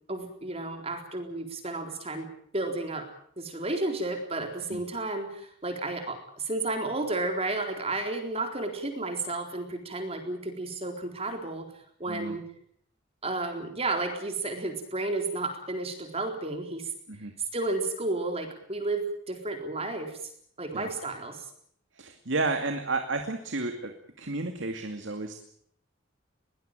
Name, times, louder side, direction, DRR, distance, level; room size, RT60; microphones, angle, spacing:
voice 1, 0.1-2.3 2.5-3.1 3.4-11.7 12.0-12.4 13.2-16.9 17.5-20.2 20.6-21.5, right 2 dB, 30° right, 5 dB, 4.1 m, -32 dB
voice 2, 22.0-25.4, right 3 dB, 75° right, 6 dB, 2.3 m, -32 dB
22.0 x 19.0 x 9.1 m, 0.64 s
head